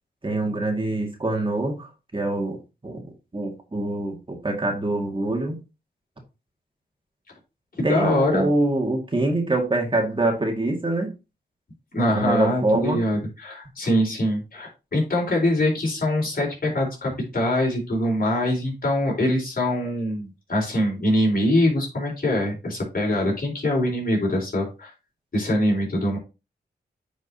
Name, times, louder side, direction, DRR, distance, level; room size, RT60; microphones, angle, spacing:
voice 1, 0.2-3.0 3.3-5.6 7.8-11.1 12.1-13.0, right 2 dB, 30° right, 2.1 m, -25 dB
voice 2, 7.8-8.5 11.9-24.9 25.3-26.2, left 1 dB, 55° left, 4.3 m, -23 dB
9.3 x 5.2 x 2.8 m
cardioid pair, 65°, 18 cm